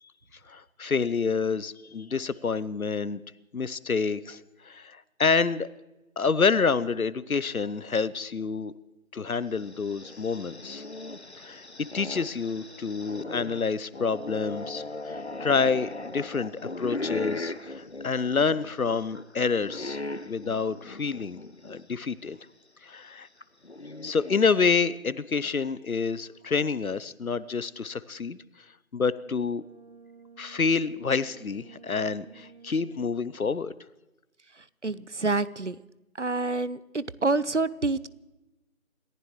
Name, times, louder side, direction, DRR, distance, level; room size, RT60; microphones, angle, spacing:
voice 1, 0.5-3.2 3.5-5.7 6.2-8.7 9.1-10.8 11.4-11.7 11.9-21.4 21.6-22.4 22.8-23.3 24.0-28.4 28.9-29.6 30.4-33.7, left 5 dB, 75° left, 18 dB, 0.8 m, -28 dB
sound 1, 9.6-21.8 22.2-22.3 23.4-24.7, left 2 dB, 50° left, 0.6 m, -38 dB
Brass instrument, 29.0-33.4, right 5 dB, 25° right, 2.4 m, -52 dB
voice 2, 34.8-35.7 36.2-38.1, right 3 dB, 55° right, 18 dB, 0.6 m, -27 dB
28.0 x 15.0 x 3.2 m, 1.0 s
figure-of-eight pair, 180°, 42 cm